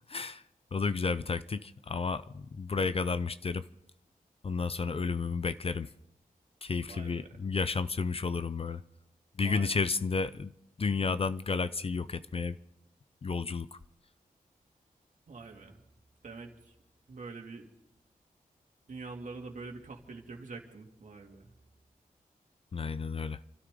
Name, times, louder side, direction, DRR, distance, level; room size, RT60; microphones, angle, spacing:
voice 1, 0.1-0.4 0.7-3.7 4.4-5.9 6.6-8.8 9.3-10.5 10.8-12.6 13.2-13.8 22.7-23.4, left 4 dB, 40° left, 0.5 m, -32 dB
voice 2, 6.9-7.3 9.4-9.8 15.3-15.8 16.2-16.7 17.1-17.7 18.9-21.5, right 3 dB, 60° right, 2.5 m, -45 dB
28.5 x 13.0 x 3.8 m
wide cardioid pair, 110°, 15 cm